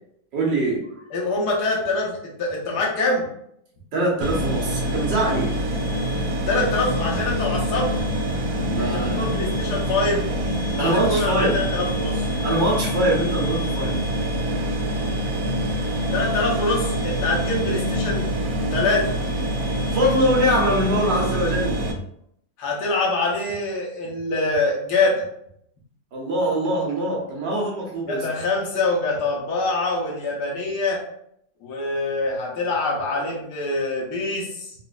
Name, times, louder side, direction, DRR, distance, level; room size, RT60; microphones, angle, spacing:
voice 1, 0.3-0.9 3.9-5.5 8.7-9.3 10.8-11.6 12.4-14.0 19.9-21.8 26.1-28.2, right 1 dB, 90° right, -3 dB, 1.7 m, -23 dB
voice 2, 1.1-3.3 6.5-8.0 8.9-10.2 10.7-12.3 16.1-18.3 18.7-19.1 22.6-25.2 28.1-31.0 31.6-34.7, left 2 dB, 70° left, -2 dB, 1.4 m, -24 dB
sound 1, 4.2-21.9, equal, 65° right, 0.8 m, -25 dB
4.0 x 2.5 x 2.3 m, 0.71 s
omnidirectional pair, 1.9 m